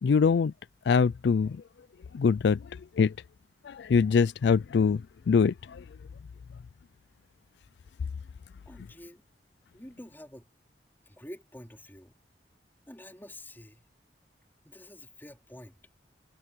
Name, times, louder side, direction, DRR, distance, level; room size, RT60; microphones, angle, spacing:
voice 1, 0.0-0.5 0.9-1.6 2.1-3.2 3.6-5.8, left 5 dB, 70° left, 0.4 m, -24 dB
voice 2, 8.7-9.2 9.7-10.5 11.1-12.1 12.9-13.8 14.6-15.8, left 1 dB, 10° left, 4.0 m, -47 dB
head